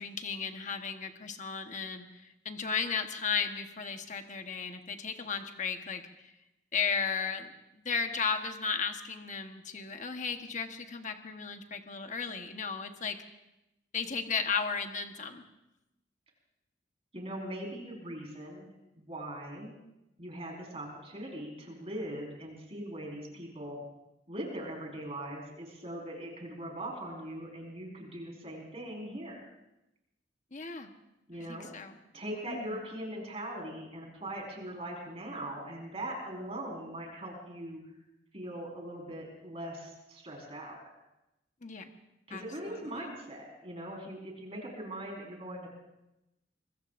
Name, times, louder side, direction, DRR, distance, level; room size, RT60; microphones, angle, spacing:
voice 1, 0.0-2.1 2.4-6.3 6.7-13.2 13.9-15.4 30.5-30.9 31.5-32.0 32.5-32.8 41.6-41.9 42.3-43.1, left 5 dB, 45° left, 6 dB, 1.2 m, -35 dB
voice 2, 17.1-18.7 19.0-19.7 20.2-23.8 24.3-29.4 31.3-31.7 32.1-37.8 38.3-40.8 42.3-45.7, right 1 dB, 35° right, -1 dB, 4.6 m, -41 dB
25.0 x 22.0 x 2.6 m, 0.92 s
head